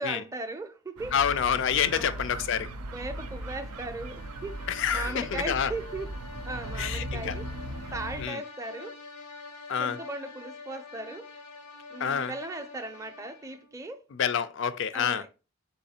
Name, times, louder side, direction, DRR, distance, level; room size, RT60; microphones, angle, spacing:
voice 1, 0.0-1.2 1.9-2.2 2.9-4.6 4.9-6.1 6.5-7.5 7.9-9.0 9.8-11.3 11.9-14.0 14.9-15.3, right 2 dB, 15° right, 0.4 m, -37 dB
sound 1, 1.0-8.3, right 1 dB, 85° right, 0.5 m, -38 dB
voice 2, 1.1-2.7 4.7-5.7 6.8-7.4 8.2-8.4 9.7-10.0 12.0-12.3 14.1-15.2, left 8 dB, 55° left, 0.3 m, -28 dB
sound 2, 2.8-13.8, left 3 dB, 85° left, 0.8 m, -46 dB
4.1 x 3.9 x 2.8 m
head